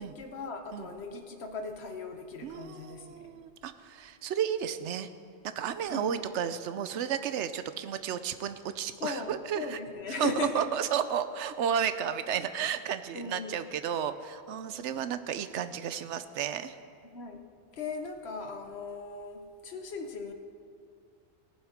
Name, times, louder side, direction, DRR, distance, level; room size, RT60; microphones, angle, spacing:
voice 1, 0.0-3.2 5.9-6.2 9.0-10.7 13.1-13.7 17.1-17.5 17.7-20.3, left 4 dB, 70° left, 6 dB, 1.1 m, -38 dB
voice 2, 2.4-5.1 5.6-9.8 10.1-16.7, right 8 dB, 90° right, 12 dB, 0.9 m, -32 dB
19.0 x 7.1 x 5.1 m, 2.3 s
omnidirectional pair, 1.1 m